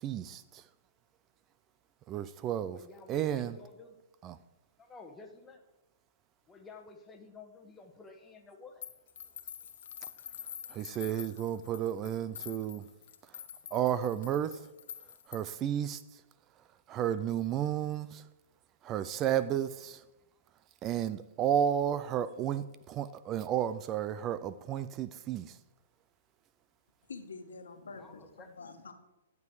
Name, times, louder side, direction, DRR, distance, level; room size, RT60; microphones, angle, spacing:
voice 1, 0.0-0.6 2.1-2.8 3.1-3.5 4.2-4.4 10.7-12.8 13.7-14.6 15.3-16.0 16.9-18.2 18.8-20.0 20.8-25.6, right 10 dB, 25° right, 0.4 m, -32 dB
voice 2, 2.7-4.0 4.8-5.6 6.5-8.8 27.9-28.5, left 4 dB, 10° left, 1.3 m, -52 dB
sound 1, 8.8-15.7, left 9 dB, 65° left, 1.0 m, -47 dB
voice 3, 27.1-28.9, left 4 dB, 90° left, 1.5 m, -47 dB
11.0 x 7.1 x 4.8 m
hypercardioid pair, 145°, 0 cm